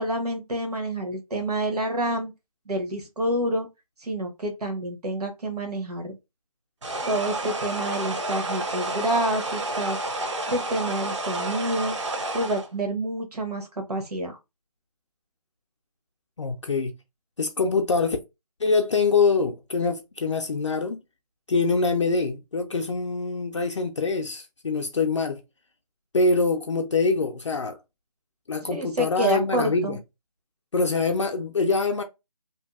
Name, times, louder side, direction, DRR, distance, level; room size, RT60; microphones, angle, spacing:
voice 1, 0.0-2.3 2.7-3.7 4.0-6.2 7.1-10.0 10.5-12.0 12.3-14.4 28.6-30.0, right 1 dB, 85° right, 1.0 m, -28 dB
sound 1, 6.8-12.7, right 2 dB, 50° right, 0.6 m, -30 dB
voice 2, 16.4-16.9 17.4-18.2 18.6-21.0 21.5-25.4 26.1-27.8 28.5-30.0 30.7-32.0, left 4 dB, 50° left, 0.4 m, -24 dB
2.7 x 2.5 x 2.3 m
figure-of-eight pair, 165°, 20 cm